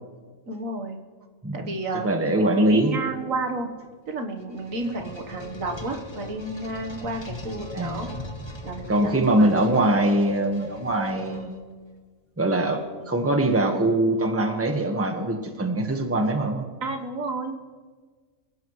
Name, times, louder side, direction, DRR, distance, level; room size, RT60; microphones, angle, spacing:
voice 1, 0.5-1.0 1.5-3.7 4.1-8.1 8.6-9.6 16.8-17.6, right 2 dB, 70° right, 4 dB, 1.7 m, -31 dB
voice 2, 1.4-1.7 2.0-3.0 7.7-8.1 8.9-11.6 12.4-16.6, right 1 dB, 10° right, 4 dB, 1.3 m, -23 dB
sound 1, 4.1-11.9, left 1 dB, 20° left, 1.6 m, -39 dB
26.0 x 16.0 x 3.2 m, 1.5 s
omnidirectional pair, 1.4 m